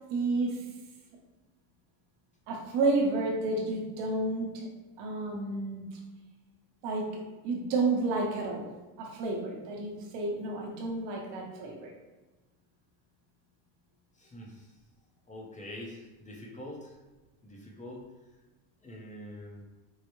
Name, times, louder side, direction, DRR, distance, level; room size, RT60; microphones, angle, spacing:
voice 1, 0.1-0.6 2.5-4.7 5.0-5.9 6.8-8.7 9.0-11.9, right 3 dB, 60° right, 0 dB, 1.0 m, -31 dB
voice 2, 14.2-14.7 15.3-16.9 17.4-18.1 18.8-19.6, left 1 dB, 15° left, -1 dB, 0.7 m, -44 dB
4.7 x 2.0 x 3.0 m, 1.2 s
supercardioid pair, 120°, 50 cm